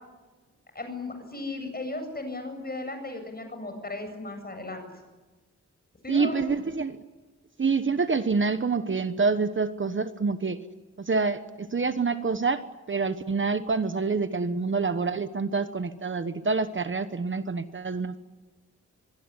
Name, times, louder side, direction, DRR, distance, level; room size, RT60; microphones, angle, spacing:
voice 1, 0.7-4.8 6.0-6.6, left 2 dB, 30° left, 6 dB, 7.7 m, -36 dB
voice 2, 6.1-7.0 7.6-10.6 11.0-18.2, right 4 dB, 40° right, 10 dB, 1.2 m, -27 dB
24.5 x 22.5 x 9.9 m, 1.3 s
wide cardioid pair, 135°, 30 cm